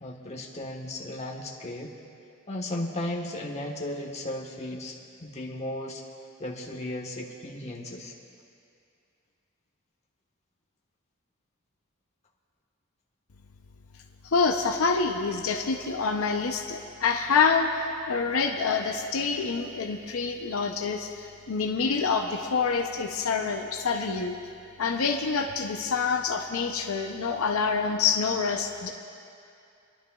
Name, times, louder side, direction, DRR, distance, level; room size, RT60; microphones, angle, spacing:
voice 1, 0.0-2.0 2.5-6.0 6.4-8.1, left 1 dB, 30° left, -2 dB, 1.3 m, -35 dB
voice 2, 14.2-24.4 24.8-28.9, left 5 dB, 75° left, 3 dB, 0.6 m, -27 dB
29.5 x 11.5 x 2.3 m, 2.5 s
head